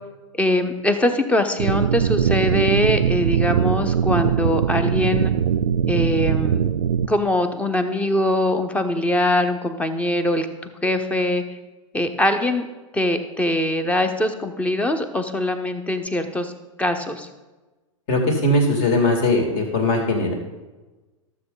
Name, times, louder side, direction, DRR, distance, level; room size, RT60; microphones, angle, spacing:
voice 1, 0.4-5.3 5.9-6.6 7.1-11.4 11.9-12.7 12.9-16.5 16.8-17.3, left 1 dB, 10° left, 8 dB, 0.8 m, -22 dB
sound 1, 1.6-7.1, right 8 dB, 80° right, 0.5 m, -21 dB
voice 2, 18.1-20.3, left 1 dB, 45° left, 2 dB, 2.6 m, -20 dB
12.5 x 7.2 x 4.0 m, 1.2 s
hypercardioid pair, 100°, 17 cm